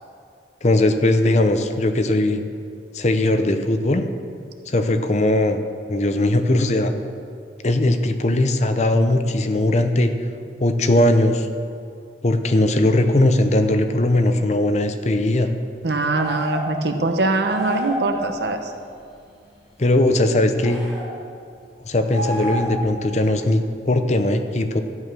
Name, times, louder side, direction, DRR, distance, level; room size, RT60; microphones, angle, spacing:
voice 1, 0.6-2.4 2.9-4.0 4.7-5.6 5.9-6.9 7.6-10.1 10.6-11.5 12.2-15.5 19.8-20.8 21.8-24.8, left 1 dB, 40° left, 8 dB, 0.7 m, -19 dB
voice 2, 15.8-18.7, right 2 dB, 65° right, 6 dB, 1.0 m, -22 dB
sound 1, 16.2-16.7 17.5-18.1 20.6-21.1 22.1-22.9, equal, ahead, 3.2 m, -29 dB
13.0 x 8.7 x 6.2 m, 2.4 s
head